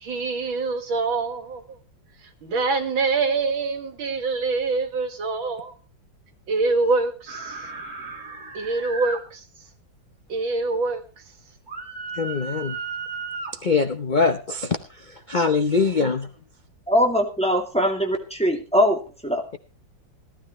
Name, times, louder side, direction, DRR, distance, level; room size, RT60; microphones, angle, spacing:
voice 1, 0.0-1.6 2.4-5.7 6.5-7.6 8.5-9.4 10.3-11.0, right 3 dB, 90° right, 2.5 m, -25 dB
sound 1, 7.3-9.2 11.7-13.5, right 4 dB, 50° right, 3.4 m, -34 dB
voice 2, 12.2-12.8 13.6-14.8 15.1-16.3, left 4 dB, 70° left, 0.4 m, -22 dB
voice 3, 16.9-19.4, equal, 5° left, 2.2 m, -22 dB
17.5 x 12.5 x 3.1 m
omnidirectional pair, 2.1 m